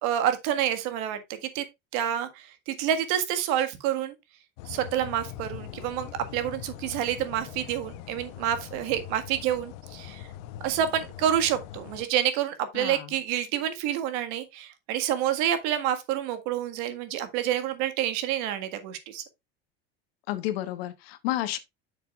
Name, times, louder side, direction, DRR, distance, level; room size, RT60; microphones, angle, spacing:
voice 1, 0.0-1.6 1.9-4.1 4.7-10.3 10.6-19.2, right 10 dB, 70° right, 1.7 m, -28 dB
sound 1, 4.6-12.1, left 13 dB, 70° left, 0.9 m, -42 dB
voice 2, 12.7-13.1 20.3-21.6, left 14 dB, 90° left, 1.3 m, -31 dB
9.3 x 6.7 x 2.4 m
supercardioid pair, 125°, 29 cm